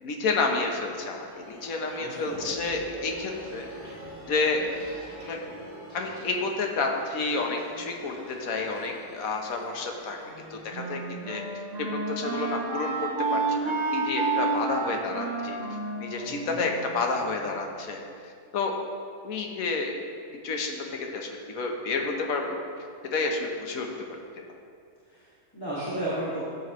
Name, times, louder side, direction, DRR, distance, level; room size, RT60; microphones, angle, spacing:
voice 1, 0.0-3.7 4.3-4.6 5.2-5.4 5.9-10.2 10.5-11.4 11.8-18.7 19.2-19.9 20.4-22.6 23.1-23.9, left 3 dB, 65° left, 2 dB, 1.4 m, -30 dB
sound 1, 0.7-12.2, equal, 20° right, 2.4 m, -45 dB
voice 2, 2.0-2.6 16.2-16.6 25.1-26.4, right 1 dB, 15° left, -11 dB, 2.2 m, -34 dB
Wind instrument woodwind instrument, 10.2-17.4, right 4 dB, 55° right, 1.3 m, -31 dB
14.0 x 7.9 x 3.1 m, 2.3 s
omnidirectional pair, 1.6 m